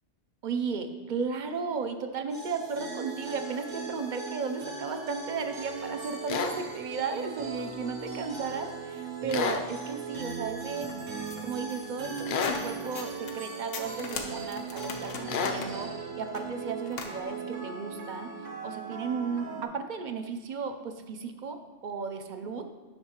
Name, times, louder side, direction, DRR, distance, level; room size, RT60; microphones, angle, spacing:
voice 1, 0.4-10.9 11.4-18.3 18.6-22.7, right 5 dB, 50° right, 7 dB, 0.6 m, -35 dB
sound 1, 2.3-19.6, right 5 dB, 80° right, 1.4 m, -38 dB
sound 2, 6.3-6.5 9.3-9.6 12.3-12.6 15.3-15.6, left 5 dB, 65° left, 0.8 m, -29 dB
sound 3, 10.6-13.4 13.7-17.2, left 4 dB, 90° left, 1.2 m, -40 dB
11.0 x 6.3 x 2.9 m, 1.3 s
omnidirectional pair, 1.3 m